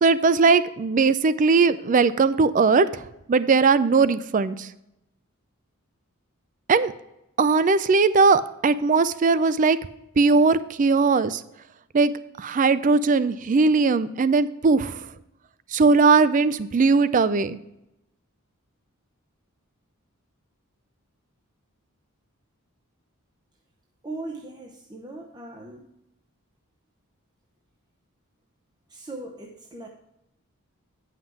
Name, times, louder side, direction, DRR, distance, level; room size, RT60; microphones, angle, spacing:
voice 1, 0.0-3.0 3.3-4.7 6.7-6.9 7.4-9.8 10.2-11.4 11.9-12.1 12.4-15.0 15.7-17.6, right 4 dB, 35° right, 15 dB, 0.4 m, -19 dB
voice 2, 24.0-25.9 28.9-29.9, right 2 dB, 20° right, 1 dB, 0.8 m, -38 dB
9.5 x 5.8 x 4.6 m, 0.85 s
head